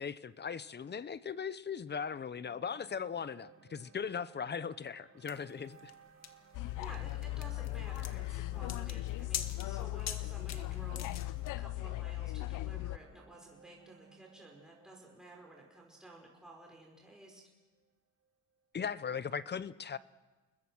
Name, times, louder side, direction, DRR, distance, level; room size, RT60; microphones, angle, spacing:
voice 1, 0.0-5.9 18.7-20.0, left 6 dB, 35° left, 17 dB, 0.8 m, -38 dB
sound 1, 2.4-18.6, right 6 dB, 50° right, 3.0 m, -62 dB
sound 2, 5.3-11.5, left 8 dB, 60° left, 1.8 m, -44 dB
sound 3, 6.5-13.0, left 17 dB, 85° left, 0.7 m, -38 dB
voice 2, 6.8-17.4, right 2 dB, ahead, -1 dB, 5.2 m, -53 dB
29.5 x 21.0 x 6.2 m, 1.2 s
cardioid pair, 90°, 30 cm